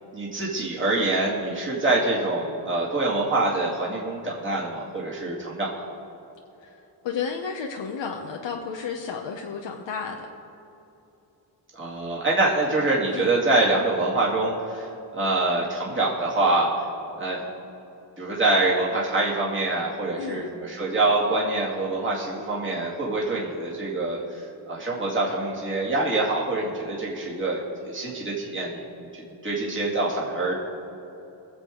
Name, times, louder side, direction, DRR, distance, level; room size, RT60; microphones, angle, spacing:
voice 1, 0.1-5.7 11.7-14.9 15.1-16.7 17.2-17.4 18.2-30.5, right 2 dB, 25° right, -5 dB, 2.5 m, -25 dB
voice 2, 6.6-10.3 13.1-13.4 20.2-20.5, left 6 dB, 80° left, 1 dB, 1.0 m, -33 dB
23.0 x 7.6 x 3.8 m, 2.9 s
wide cardioid pair, 125°, 44 cm